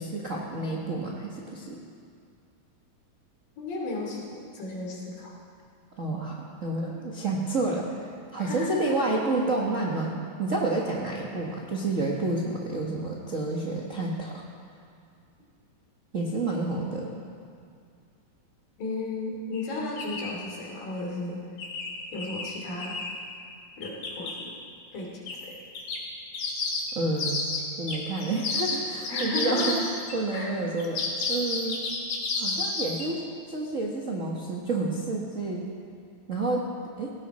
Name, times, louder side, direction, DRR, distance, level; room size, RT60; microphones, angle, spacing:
voice 1, 0.0-1.8 6.0-7.9 8.3-14.4 16.1-17.1 26.9-27.5 27.8-29.7 30.1-31.0 31.3-31.8 32.4-33.2 33.5-35.6 36.3-36.6 37.0-37.1, right 2 dB, 80° right, -3 dB, 0.7 m, -29 dB
voice 2, 3.6-5.3 6.8-7.0 8.4-9.0 18.8-21.4 22.1-23.0 23.8-24.5 24.9-25.6 29.1-29.8 30.3-30.5, left 2 dB, 80° left, -2 dB, 4.6 m, -34 dB
sound 1, 19.5-19.6 20.0-20.4 21.6-23.2 23.8-24.4 25.3-25.4 25.8-30.2 30.8-33.1, left 3 dB, 65° left, 3.5 m, -31 dB
17.5 x 17.5 x 4.2 m, 2.3 s
omnidirectional pair, 3.9 m